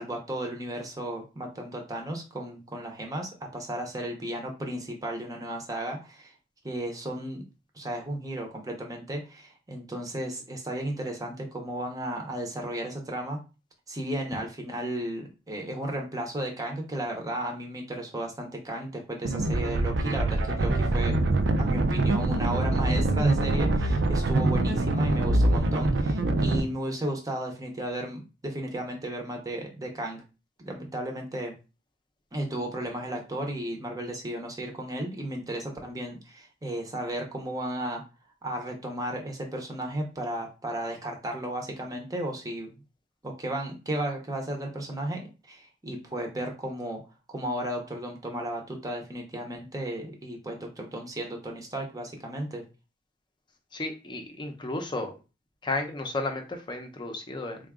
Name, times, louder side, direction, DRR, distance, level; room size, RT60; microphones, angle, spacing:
voice 1, 0.0-6.3 6.6-7.4 7.7-13.4 13.9-21.1 21.6-30.2 30.6-31.6 32.3-38.0 38.4-42.8 43.2-45.2 45.5-47.0 47.3-52.6, right 1 dB, 20° right, 2 dB, 0.7 m, -34 dB
sound 1, 19.2-26.6, right 2 dB, 75° right, 0.4 m, -24 dB
voice 2, 53.7-55.1 55.6-57.6, left 2 dB, 25° left, 4 dB, 0.6 m, -33 dB
3.8 x 2.3 x 3.6 m, 0.31 s
head